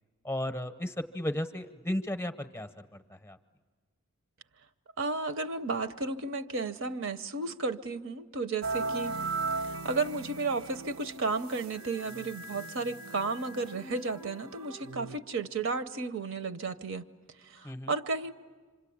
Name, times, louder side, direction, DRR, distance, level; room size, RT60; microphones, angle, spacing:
voice 1, 0.2-3.4 17.6-17.9, left 1 dB, 10° left, 0.7 m, -35 dB
voice 2, 5.0-9.2 9.8-17.0 17.4-18.3, right 3 dB, 60° right, 0.7 m, -33 dB
sound 1, 8.6-15.2, right 3 dB, 80° right, 1.0 m, -38 dB
26.5 x 26.0 x 8.5 m
head